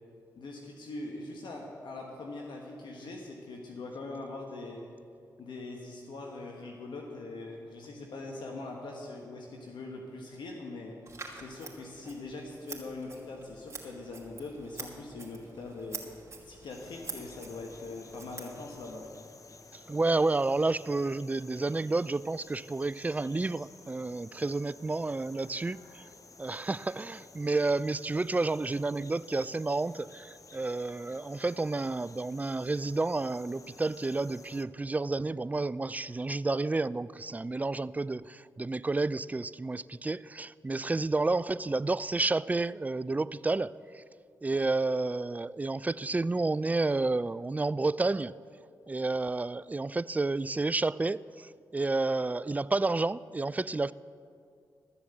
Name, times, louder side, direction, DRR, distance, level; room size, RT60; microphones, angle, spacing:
voice 1, 0.3-4.8 5.4-11.0 11.3-16.0 16.4-19.0, left 2 dB, 75° left, 1.4 m, -42 dB
Scissors, 11.1-19.1, right 3 dB, 35° right, 2.6 m, -47 dB
sound 1, 16.7-34.6, left 4 dB, 45° left, 0.8 m, -54 dB
voice 2, 19.7-26.0 26.4-44.0 44.4-48.3 48.9-53.9, right 3 dB, 20° right, 0.3 m, -30 dB
13.5 x 7.0 x 7.8 m
supercardioid pair, 45°, 8 cm